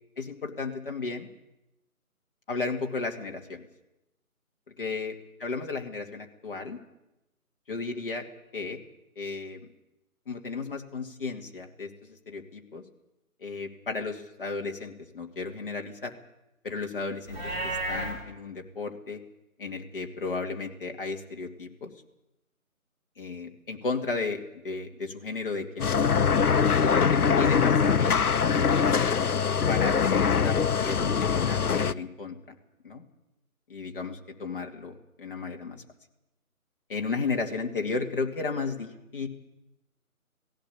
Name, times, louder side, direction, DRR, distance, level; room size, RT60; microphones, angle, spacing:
voice 1, 0.2-1.3 2.5-3.6 4.8-5.1 5.4-6.8 7.7-8.2 8.5-8.8 9.2-9.6 10.3-12.8 13.4-16.1 16.6-19.2 19.6-21.9 23.2-24.4 24.6-26.3 26.8-28.8 29.7-32.4 32.8-33.0 33.7-35.8 36.9-39.3, left 4 dB, 40° left, 2 dB, 2.5 m, -34 dB
Livestock farm animals working animals, 17.2-18.1, right 1 dB, 10° right, 4.4 m, -31 dB
sound 1, 25.8-31.9, left 6 dB, 85° left, 0.9 m, -23 dB
18.5 x 16.5 x 8.6 m, 0.91 s
figure-of-eight pair, 165°, 44 cm